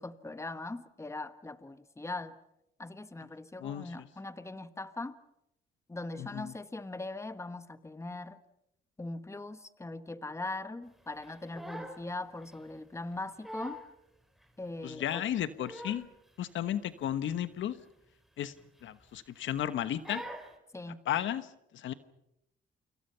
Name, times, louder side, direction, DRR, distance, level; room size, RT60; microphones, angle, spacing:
voice 1, 0.0-2.3 2.8-5.2 5.9-8.4 9.0-13.8 14.6-15.2 20.7-21.0, left 2 dB, 15° left, 12 dB, 1.4 m, -40 dB
voice 2, 6.2-6.5 14.8-16.1 16.4-17.7 18.4-18.5 18.8-20.2 21.1-21.5 21.7-21.9, left 11 dB, 75° left, 13 dB, 1.3 m, -33 dB
Crying sobbing, 11.2-12.1 12.4-12.6 13.1-13.2 13.4-13.9 14.4-14.5 15.3-16.1 16.4-16.7 17.0-17.1 17.5-17.7 18.5-19.0 19.4-19.6 20.0-20.6, equal, ahead, 3.7 m, -44 dB
29.0 x 26.0 x 5.7 m, 0.81 s
cardioid pair, 90°, 20 cm